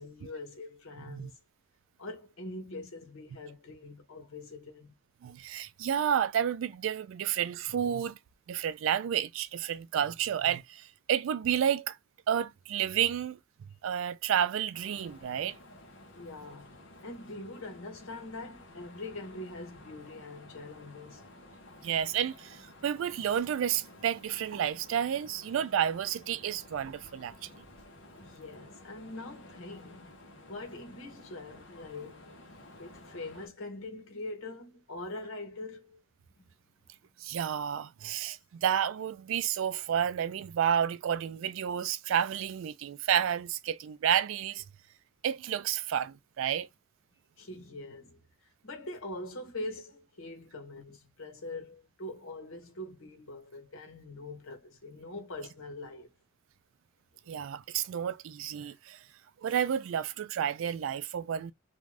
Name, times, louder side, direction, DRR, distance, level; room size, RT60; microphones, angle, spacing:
voice 1, 0.0-1.4 2.0-5.0 16.2-21.2 28.2-30.2 30.5-32.4 32.8-36.0 36.4-36.5 47.4-48.2 48.6-56.1, left 2 dB, 80° left, 1.0 m, -43 dB
voice 2, 5.2-8.2 8.5-12.0 12.3-13.4 13.8-15.6 21.8-27.5 37.2-44.6 45.2-46.7 57.3-59.0 59.4-61.5, right 9 dB, 70° right, 0.3 m, -30 dB
sound 1, 14.7-33.5, left 1 dB, 60° left, 0.8 m, -53 dB
2.5 x 2.2 x 3.2 m
head